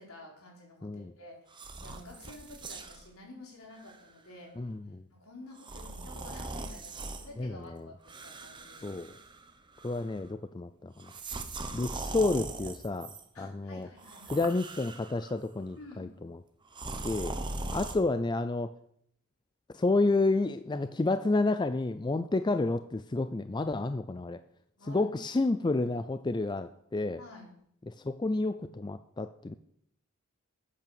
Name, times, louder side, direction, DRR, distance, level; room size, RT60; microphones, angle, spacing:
voice 1, 0.0-4.5 5.1-9.2 13.3-14.4 15.8-16.1 17.6-17.9 24.8-25.1 25.5-25.6 27.2-27.5, left 1 dB, 70° left, -1 dB, 4.2 m, -51 dB
sound 1, 1.5-3.1 3.7-4.0 5.6-7.3 8.1-9.5 9.8-10.2 11.0-13.2 14.0-15.4 16.7-18.0, right 2 dB, 20° right, 1.0 m, -40 dB
voice 2, 4.6-5.0 7.4-7.9 8.8-9.1 9.8-11.1 11.7-13.9 14.3-16.1 17.0-17.4 17.7-18.7 19.7-24.4 24.9-27.2 27.9-29.5, left 2 dB, 20° left, 11 dB, 0.4 m, -30 dB
10.5 x 8.4 x 7.1 m, 0.70 s
head